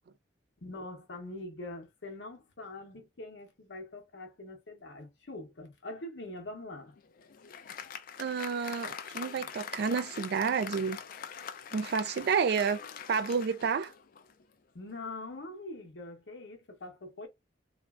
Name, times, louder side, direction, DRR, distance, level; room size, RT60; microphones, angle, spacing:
voice 1, 0.6-6.9 14.7-17.3, left 2 dB, 75° left, 0.8 m, -43 dB
Applause, 6.9-14.4, left 7 dB, 50° left, 0.4 m, -43 dB
voice 2, 8.2-11.0 11.7-12.8 13.1-13.9, right 6 dB, 60° right, 0.3 m, -30 dB
3.1 x 2.5 x 2.3 m
head